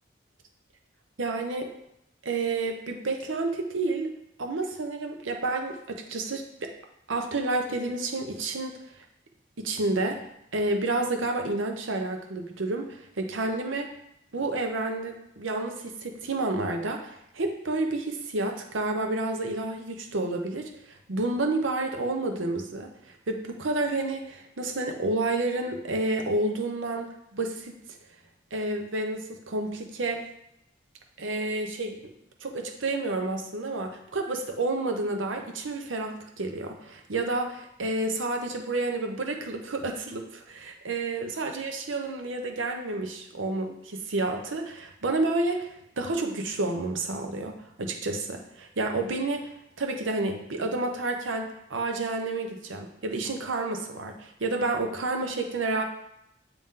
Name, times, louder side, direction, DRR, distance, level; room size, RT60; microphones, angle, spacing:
voice 1, 1.2-1.7 2.2-4.1 4.4-6.7 7.1-8.8 9.6-10.2 10.5-13.9 14.3-28.0 28.5-30.2 31.2-32.0 32.4-49.5 49.8-55.8, right 2 dB, 85° right, 3 dB, 0.8 m, -30 dB
8.8 x 3.0 x 3.7 m, 0.81 s
head